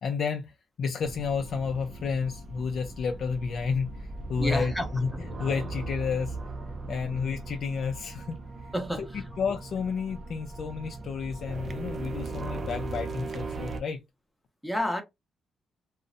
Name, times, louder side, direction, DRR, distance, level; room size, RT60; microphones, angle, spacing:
voice 1, 0.0-5.1 5.4-6.4 6.9-14.0, left 5 dB, 60° left, 0.3 m, -31 dB
sound 1, 1.0-13.8, right 3 dB, 40° right, 0.4 m, -38 dB
voice 2, 4.4-4.9 8.7-9.2 14.6-15.0, equal, ahead, 0.7 m, -29 dB
2.6 x 2.0 x 2.5 m
cardioid pair, 100°, 0 cm